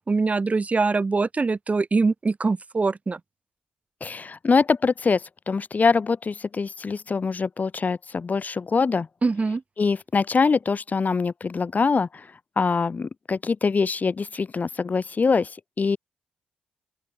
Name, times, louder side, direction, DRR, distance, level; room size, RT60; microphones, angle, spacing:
voice 1, 0.1-3.2 9.2-9.6, right 4 dB, 35° right, 1.1 m, -23 dB
voice 2, 4.0-9.1 9.8-12.3 12.6-16.0, left 4 dB, 40° left, 0.8 m, -24 dB
open air
hypercardioid pair, 40°, 4 cm